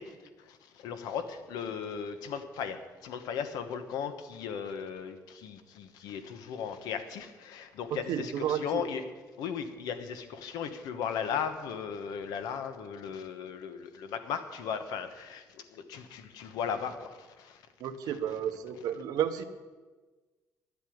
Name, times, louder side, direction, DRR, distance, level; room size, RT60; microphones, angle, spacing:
voice 1, 0.0-9.0 9.4-17.6 18.0-18.2, left 7 dB, 85° left, 9 dB, 1.2 m, -37 dB
voice 2, 7.9-8.8 17.8-19.4, right 9 dB, 75° right, 9 dB, 1.0 m, -32 dB
10.5 x 8.3 x 9.4 m, 1.3 s
cardioid pair, 135°, 7 cm